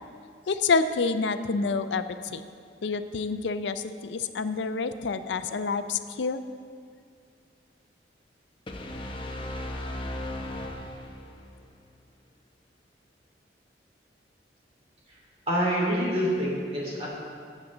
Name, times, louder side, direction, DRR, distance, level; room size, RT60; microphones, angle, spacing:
voice 1, 0.5-2.4 2.8-6.4, left 4 dB, 90° left, 11 dB, 0.5 m, -28 dB
sound 1, 8.7-11.6, left 1 dB, 30° left, 0.8 m, -36 dB
voice 2, 15.5-17.1, equal, 35° right, -5 dB, 3.0 m, -26 dB
16.0 x 7.4 x 3.8 m, 2.2 s
head